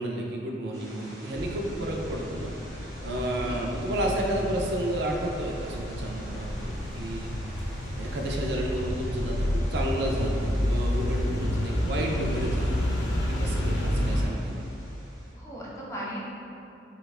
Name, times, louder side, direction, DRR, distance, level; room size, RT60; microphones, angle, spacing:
voice 1, 0.0-2.5 3.0-7.3 8.0-14.6, right 1 dB, 70° right, 0 dB, 0.4 m, -31 dB
sound 1, 0.7-15.3, equal, 25° right, 1.1 m, -47 dB
sound 2, 1.3-14.2, equal, 90° left, 0.4 m, -30 dB
voice 2, 3.1-3.6 15.3-16.4, equal, 15° left, -5 dB, 0.4 m, -38 dB
4.2 x 2.3 x 2.3 m, 2.7 s
head